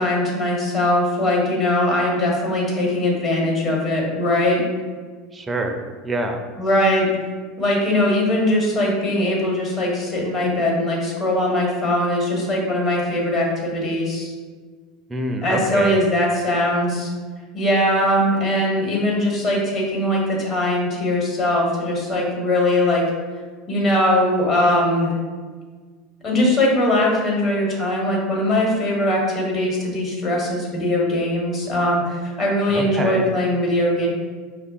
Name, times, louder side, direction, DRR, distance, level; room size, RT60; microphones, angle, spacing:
voice 1, 0.0-4.6 6.6-7.1 7.6-14.3 15.4-17.1 17.5-23.0 23.7-25.1 26.2-34.1, left 1 dB, 40° left, -2 dB, 1.1 m, -20 dB
voice 2, 5.3-6.4 15.1-16.0 32.7-33.3, right 1 dB, 20° right, 4 dB, 0.4 m, -26 dB
5.0 x 2.2 x 2.4 m, 1.5 s
hypercardioid pair, 95°, 0 cm